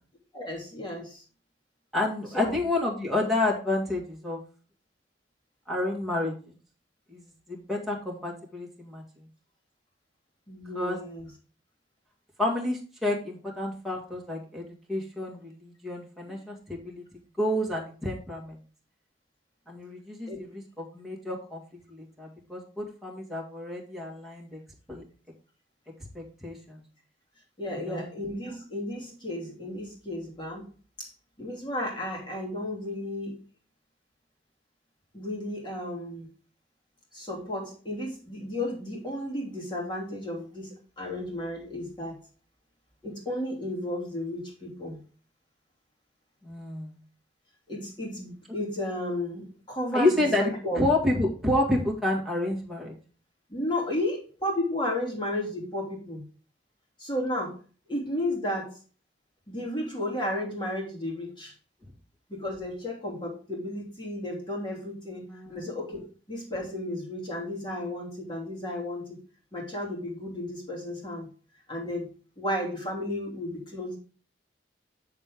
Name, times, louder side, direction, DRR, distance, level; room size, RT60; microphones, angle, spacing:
voice 1, 0.3-1.2 2.3-2.6 10.5-11.3 16.3-16.4 20.3-20.4 27.6-30.6 31.0-31.1 31.4-33.4 35.1-36.3 37.1-42.2 43.0-45.0 47.7-50.8 53.5-56.2 57.0-57.6 57.9-58.8 59.5-61.5 62.3-69.2 69.5-71.3 71.7-72.1 72.4-74.0, left 1 dB, 25° left, -2 dB, 2.8 m, -33 dB
voice 2, 1.9-4.4 5.7-6.5 7.1-9.0 10.8-11.0 12.4-17.0 17.4-18.6 19.7-21.6 21.9-24.6 24.9-25.0 26.1-26.8 27.7-28.1 46.4-47.0 49.9-53.0 65.2-65.6, left 1 dB, ahead, -3 dB, 2.0 m, -29 dB
7.4 x 6.7 x 3.6 m, 0.38 s
head